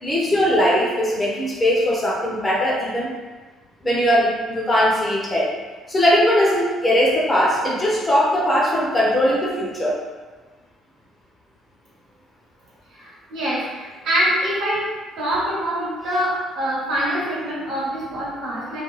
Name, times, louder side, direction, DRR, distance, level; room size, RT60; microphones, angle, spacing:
voice 1, 0.0-3.1 3.8-5.5 5.9-9.9, equal, 20° left, -5 dB, 0.6 m, -19 dB
voice 2, 12.9-14.9 15.2-18.8, equal, 75° right, -7 dB, 1.1 m, -24 dB
2.3 x 2.2 x 3.1 m, 1.3 s
cardioid pair, 105°, 0 cm